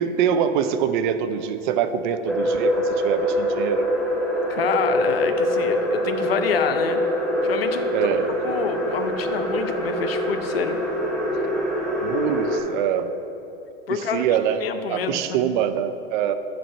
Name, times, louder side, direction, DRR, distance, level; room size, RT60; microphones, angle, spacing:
voice 1, 0.0-3.9 7.9-8.3 12.0-13.1 13.9-14.6 14.9-16.3, right 8 dB, 55° right, 10 dB, 0.5 m, -24 dB
sound 1, 2.3-12.6, equal, ahead, 0.8 m, -24 dB
voice 2, 4.5-7.0 7.4-7.9 8.4-10.8 13.9-14.3 14.6-15.4, left 7 dB, 75° left, 8 dB, 0.6 m, -27 dB
6.3 x 4.0 x 5.5 m, 2.8 s
hypercardioid pair, 95°, 30 cm